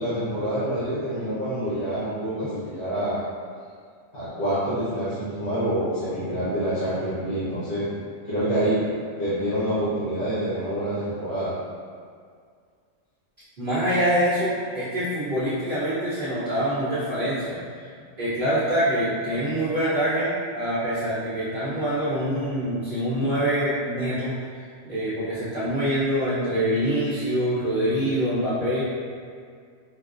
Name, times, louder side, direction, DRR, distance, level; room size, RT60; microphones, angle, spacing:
voice 1, 0.0-3.2 4.1-7.8 8.2-8.8 9.2-11.5, right 1 dB, 90° left, -13 dB, 1.3 m, -27 dB
voice 2, 13.6-17.6 18.2-24.3 24.9-28.8, equal, 45° right, -13 dB, 0.9 m, -25 dB
4.8 x 2.0 x 2.5 m, 2.1 s
omnidirectional pair, 1.4 m